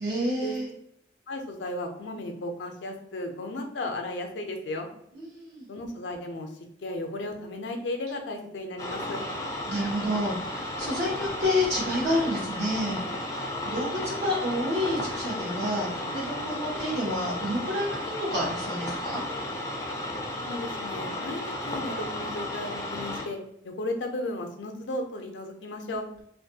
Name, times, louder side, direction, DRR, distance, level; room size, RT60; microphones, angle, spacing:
voice 1, 0.0-0.7 5.1-5.7 9.7-19.2, left 1 dB, 70° right, -3 dB, 0.9 m, -29 dB
voice 2, 1.3-4.9 5.7-6.5 6.8-9.2 20.4-23.4 23.6-26.1, left 1 dB, 85° left, 4 dB, 0.4 m, -34 dB
sound 1, 8.8-23.2, left 1 dB, 20° left, 0.4 m, -34 dB
2.5 x 2.2 x 2.7 m, 0.73 s
head